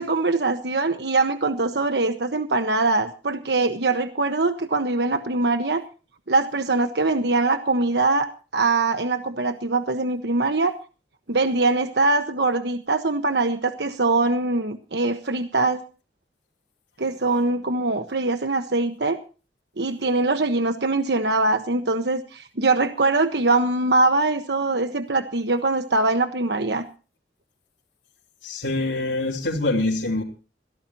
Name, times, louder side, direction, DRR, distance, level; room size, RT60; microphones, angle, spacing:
voice 1, 0.0-5.8 6.3-8.3 8.5-10.7 11.3-15.8 17.0-19.2 19.8-26.9, right 3 dB, 65° right, 8 dB, 1.3 m, -22 dB
voice 2, 28.4-30.2, left 2 dB, 85° left, -3 dB, 3.3 m, -25 dB
22.5 x 17.0 x 2.9 m, 0.36 s
head